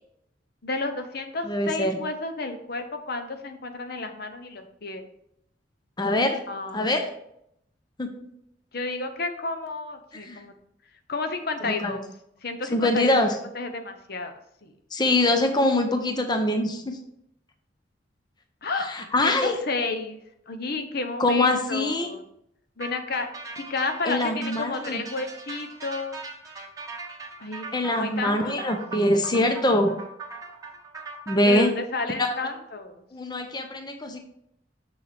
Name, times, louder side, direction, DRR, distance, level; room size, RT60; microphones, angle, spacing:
voice 1, 0.6-5.1 6.5-6.9 8.7-10.5 11.1-12.1 12.4-13.1 13.5-14.7 18.6-18.9 19.2-22.2 22.8-23.3 23.6-26.2 27.4-28.7 31.4-33.0, left 3 dB, 60° left, 7 dB, 0.8 m, -31 dB
voice 2, 1.5-2.0 6.0-6.4 6.7-7.1 8.0-8.2 10.2-10.4 11.6-12.0 12.7-13.3 14.9-17.0 18.9-19.6 21.2-22.1 24.0-25.0 27.7-29.9 31.3-31.7 32.2-32.3 33.1-34.2, left 1 dB, 25° left, 5 dB, 0.7 m, -23 dB
sound 1, 22.8-31.4, right 4 dB, 20° right, 1.4 m, -40 dB
6.6 x 6.5 x 3.5 m, 0.75 s
head